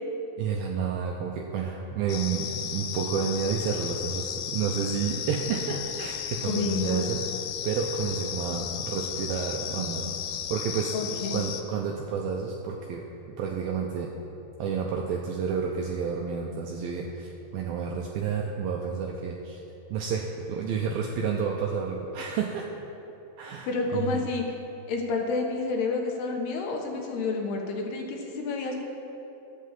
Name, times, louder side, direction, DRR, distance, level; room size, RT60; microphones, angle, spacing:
voice 1, 0.4-7.2 7.6-10.1 10.5-10.9 11.3-14.1 14.6-19.6 19.9-22.7 23.4-24.2, right 6 dB, 80° right, 0 dB, 2.2 m, -30 dB
sound 1, 2.1-11.6, left 9 dB, 90° left, 2.0 m, -34 dB
voice 2, 6.4-7.1 10.9-11.4 23.7-24.4 24.9-28.8, left 3 dB, 70° left, 1 dB, 3.2 m, -29 dB
11.5 x 8.6 x 7.5 m, 3.0 s
omnidirectional pair, 5.0 m